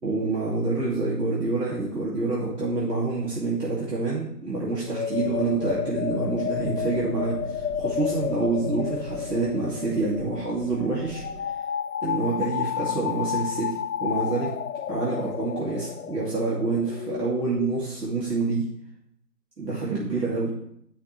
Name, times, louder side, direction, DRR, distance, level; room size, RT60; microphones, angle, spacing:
voice 1, 0.0-11.2 12.0-14.5 14.9-18.7 19.6-20.5, right 3 dB, 70° right, -6 dB, 2.7 m, -27 dB
sound 1, 4.6-17.9, left 9 dB, 60° left, 0.5 m, -31 dB
sound 2, 5.1-11.4, right 1 dB, 50° right, 1.6 m, -41 dB
13.0 x 5.8 x 3.3 m, 0.72 s
figure-of-eight pair, 160°, 49 cm